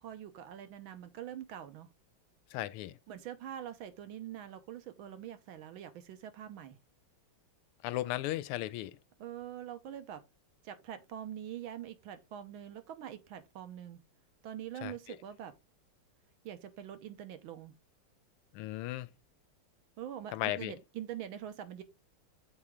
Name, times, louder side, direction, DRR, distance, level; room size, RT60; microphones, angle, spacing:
voice 1, 0.0-1.9 3.1-6.8 9.2-10.2 10.6-14.0 14.4-15.5 16.4-17.7 20.0-21.8, right 10 dB, 70° right, 1.6 m, -44 dB
voice 2, 2.5-3.0 7.8-9.0 14.8-15.2 18.5-19.1 20.3-20.7, left 15 dB, 85° left, 1.5 m, -36 dB
8.1 x 4.3 x 3.6 m
omnidirectional pair, 2.4 m